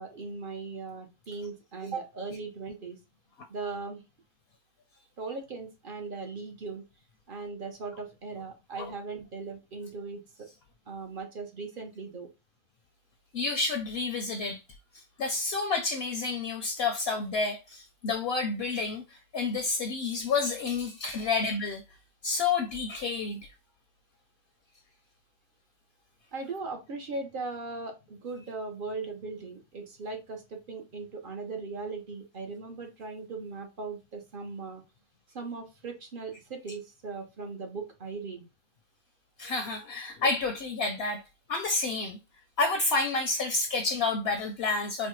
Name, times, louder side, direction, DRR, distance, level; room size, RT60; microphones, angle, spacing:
voice 1, 0.0-3.0 3.5-4.0 5.2-6.8 7.3-10.5 10.9-12.3 26.3-34.8 35.3-38.4, right 4 dB, 50° right, 0.7 m, -38 dB
voice 2, 13.3-14.6 14.9-21.8 22.2-23.4 39.4-41.2 41.5-42.2 42.6-45.1, left 3 dB, 65° left, 0.7 m, -29 dB
4.2 x 2.1 x 3.0 m
omnidirectional pair, 1.3 m